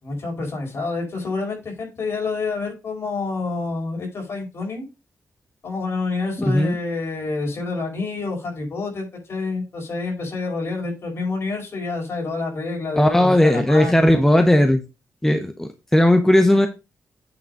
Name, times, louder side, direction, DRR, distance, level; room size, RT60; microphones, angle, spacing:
voice 1, 0.0-4.8 5.6-14.2, left 3 dB, 60° left, 0 dB, 4.8 m, -28 dB
voice 2, 13.0-14.8 15.2-16.7, left 1 dB, 10° left, 6 dB, 0.9 m, -16 dB
8.8 x 3.9 x 5.4 m, 0.27 s
wide cardioid pair, 110°, 5 cm